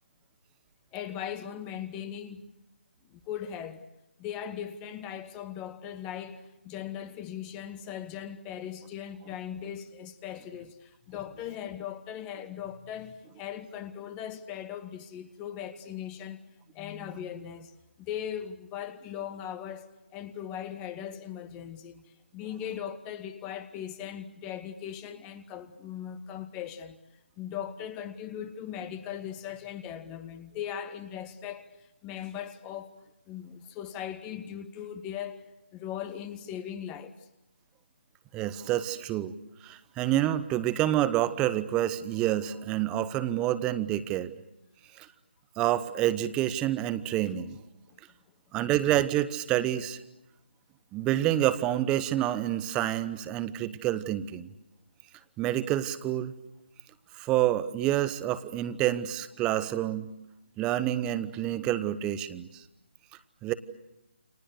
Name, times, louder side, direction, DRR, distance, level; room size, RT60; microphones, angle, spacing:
voice 1, 0.9-2.5 3.1-3.8 4.2-16.4 16.7-27.0 27.4-33.0 33.3-37.3, left 9 dB, 15° left, 1.1 m, -39 dB
voice 2, 38.3-39.3 39.6-44.3 45.0-45.1 45.6-47.6 48.5-50.0 50.9-54.5 55.4-56.3 57.1-60.1 60.6-62.6 63.4-63.5, right 13 dB, 15° right, 1.0 m, -28 dB
30.0 x 27.0 x 6.7 m
figure-of-eight pair, 155°, 6 cm